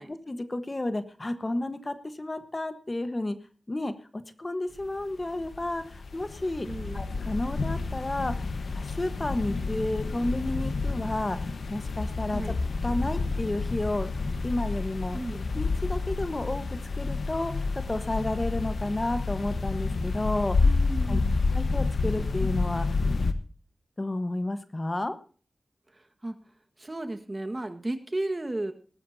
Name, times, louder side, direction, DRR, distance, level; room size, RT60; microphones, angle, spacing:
voice 1, 0.1-3.4 3.7-6.7 6.9-8.5 8.7-12.4 12.8-14.1 14.4-15.2 15.5-16.6 17.0-20.7 21.1-21.2 21.5-23.0 24.0-25.2, left 2 dB, 30° left, 10 dB, 1.3 m, -31 dB
sound 1, 4.8-4.9 5.1-23.3, left 3 dB, 85° left, 1.2 m, -29 dB
voice 2, 6.6-7.0 12.3-12.6 15.1-15.5 20.6-21.5 25.9-26.4 26.8-28.7, right 2 dB, 30° right, 7 dB, 1.6 m, -34 dB
19.0 x 13.0 x 2.8 m, 0.40 s
wide cardioid pair, 85°, 0 cm